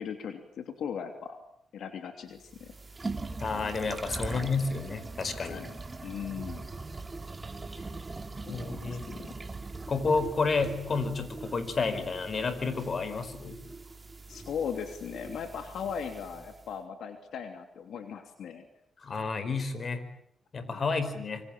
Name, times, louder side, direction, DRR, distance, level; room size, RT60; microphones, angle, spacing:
voice 1, 0.0-1.4 1.7-2.7 4.1-4.5 5.3-5.7 6.0-6.6 7.7-7.9 8.4-9.3 14.3-18.7 20.7-20.9, left 7 dB, 80° left, 7 dB, 3.0 m, -38 dB
sound 1, 2.4-16.7, right 3 dB, 25° right, 2.8 m, -41 dB
voice 2, 3.4-5.6 8.5-9.0 9.9-13.6 19.0-20.0 20.5-21.4, left 4 dB, 45° left, 12 dB, 5.0 m, -30 dB
27.0 x 25.0 x 8.9 m, 0.70 s
cardioid pair, 90°, 0 cm